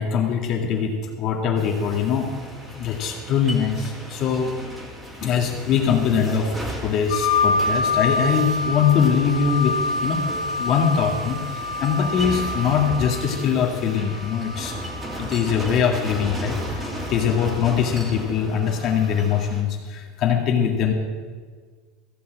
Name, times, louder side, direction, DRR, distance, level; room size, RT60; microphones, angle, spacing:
voice 1, 0.0-2.3 2.7-4.5 5.2-6.5 6.8-14.7 15.2-20.9, left 7 dB, 40° left, 1 dB, 2.0 m, -22 dB
sound 1, 1.6-19.6, equal, 15° right, 2.2 m, -35 dB
sound 2, 7.1-15.5 16.5-17.4, left 3 dB, 75° left, 1.7 m, -27 dB
15.5 x 5.7 x 8.6 m, 1.6 s
supercardioid pair, 165°, 0 cm